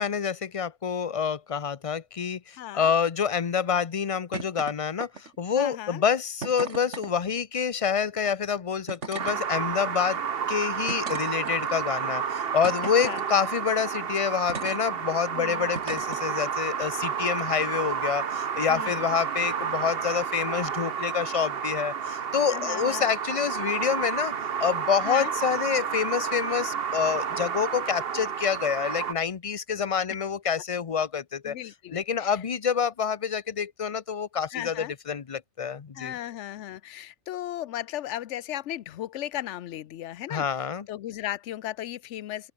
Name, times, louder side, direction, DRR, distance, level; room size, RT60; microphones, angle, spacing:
voice 1, 0.0-10.2 10.5-24.3 24.6-31.5 31.9-36.1 40.3-40.9, left 7 dB, 35° left, 0.7 m, -27 dB
voice 2, 2.6-2.9 5.5-6.0 13.0-13.2 15.3-15.7 18.7-19.0 22.5-23.1 25.0-25.3 31.4-32.4 34.5-34.9 35.9-42.5, left 12 dB, 75° left, 1.0 m, -36 dB
sound 1, 4.3-4.7 5.0-5.4 6.4-7.1 8.2-8.3 8.9-9.4 10.0-10.2 10.9-11.8 12.6-13.3 14.5-14.8 15.7-16.2 17.3-17.4, right 5 dB, 75° right, 2.3 m, -37 dB
sound 2, 9.2-29.1, right 7 dB, 55° right, 1.2 m, -31 dB
open air
omnidirectional pair, 1.2 m